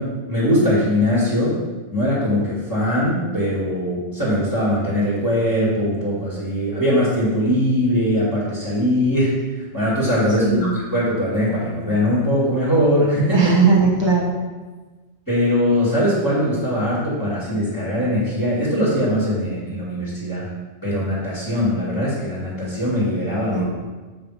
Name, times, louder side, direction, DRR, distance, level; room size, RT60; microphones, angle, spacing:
voice 1, 0.0-1.6 1.9-9.3 9.7-13.5 15.3-20.5 20.8-23.7, equal, 15° left, -10 dB, 2.8 m, -21 dB
voice 2, 10.4-10.8 13.3-14.4 23.5-23.8, right 4 dB, 20° right, -2 dB, 1.4 m, -18 dB
7.2 x 5.8 x 5.1 m, 1.3 s
omnidirectional pair, 1.2 m